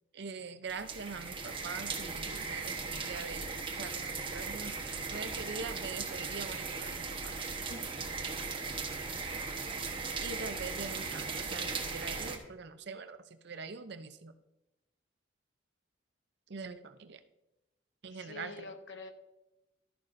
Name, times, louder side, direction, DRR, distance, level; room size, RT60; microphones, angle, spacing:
voice 1, 0.1-4.8 5.1-7.3 10.2-13.2 13.4-14.3 16.5-17.2 18.0-18.6, right 4 dB, 60° right, 10 dB, 0.7 m, -43 dB
sound 1, 0.7-12.4, right 4 dB, 30° right, 1.1 m, -38 dB
voice 2, 18.1-19.1, left 3 dB, 70° left, 7 dB, 0.9 m, -47 dB
12.5 x 10.5 x 2.6 m, 0.93 s
head